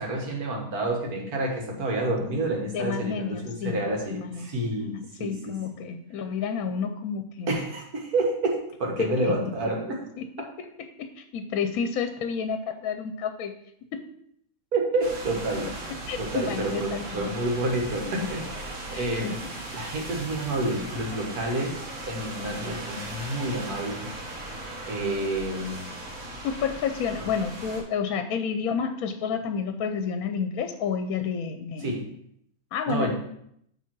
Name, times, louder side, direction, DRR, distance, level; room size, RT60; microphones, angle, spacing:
voice 1, 0.0-5.5 7.5-10.0 14.7-15.7 16.2-19.4 19.7-21.8 22.1-24.1 24.9-25.9 27.2-27.3 31.8-32.1 32.9-33.1, right 2 dB, 85° right, 0 dB, 1.9 m, -29 dB
voice 2, 2.7-3.8 4.1-4.5 5.2-7.5 9.0-9.3 10.2-10.5 10.8-13.6 13.9-14.1 16.1-17.3 18.0-18.1 18.9-19.4 19.7-19.9 24.9-25.0 26.4-31.9 32.7-33.1, left 6 dB, 80° left, 7 dB, 1.1 m, -30 dB
sound 1, 15.0-27.8, right 2 dB, 65° right, 1.8 m, -38 dB
7.3 x 3.7 x 6.0 m, 0.71 s
omnidirectional pair, 1.5 m